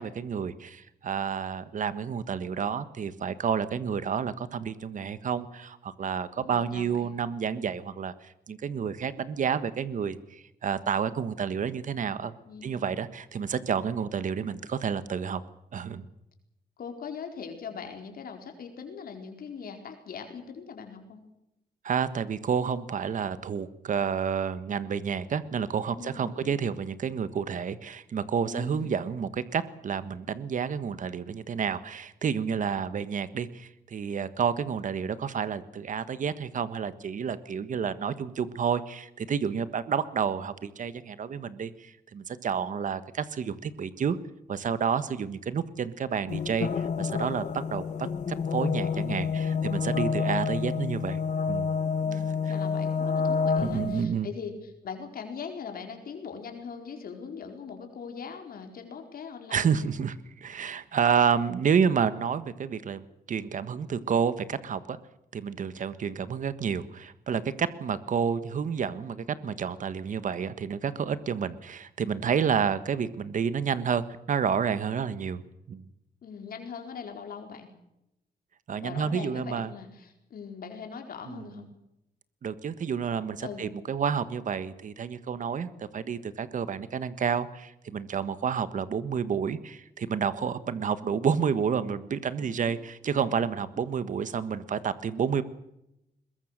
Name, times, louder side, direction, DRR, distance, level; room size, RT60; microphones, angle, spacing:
voice 1, 0.0-12.3 12.6-15.4 15.7-16.1 21.8-44.2 44.5-51.7 52.1-52.5 53.6-54.3 59.5-65.0 65.3-75.4 75.7-75.9 78.7-79.7 81.3-81.5 82.4-95.4, right 7 dB, 50° right, 14 dB, 1.5 m, -30 dB
voice 2, 6.4-7.2 12.4-13.0 16.8-21.2 26.0-26.6 28.4-28.9 52.0-59.9 76.2-77.7 78.8-81.7 83.4-83.7 92.4-92.8, left 6 dB, 65° left, 4 dB, 4.6 m, -41 dB
sound 1, 46.3-54.0, left 6 dB, 45° left, 1.2 m, -29 dB
22.0 x 21.5 x 6.7 m, 0.84 s
wide cardioid pair, 145°, 16 cm